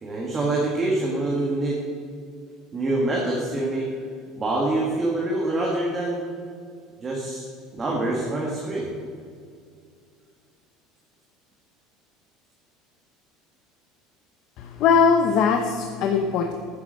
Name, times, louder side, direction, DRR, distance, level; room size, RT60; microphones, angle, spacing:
voice 1, 0.0-1.8 2.7-3.9 4.3-6.2 7.0-7.4 7.7-8.9, right 2 dB, 20° right, -3 dB, 1.9 m, -25 dB
voice 2, 14.6-16.5, left 6 dB, 50° left, 4 dB, 0.9 m, -20 dB
9.9 x 9.6 x 6.6 m, 2.2 s
cardioid pair, 150°, 0 cm